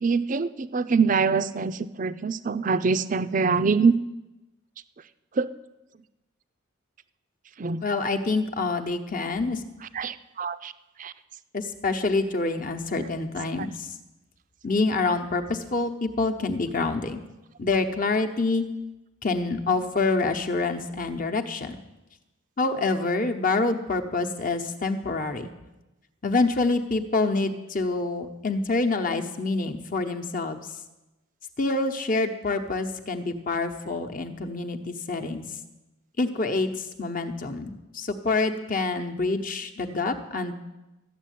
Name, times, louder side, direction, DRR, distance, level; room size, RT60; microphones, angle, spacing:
voice 1, 0.0-3.9 5.4-5.5 7.6-7.8 9.9-10.7 11.0-11.1 13.0-13.1, right 5 dB, 40° right, 13 dB, 0.5 m, -24 dB
voice 2, 7.8-9.6 11.5-13.9 14.6-17.2 17.6-18.6 19.2-21.8 22.6-25.5 26.2-30.6 31.6-35.4 36.2-40.5, left 3 dB, 40° left, 5 dB, 1.0 m, -26 dB
13.0 x 7.3 x 9.3 m, 1.0 s
head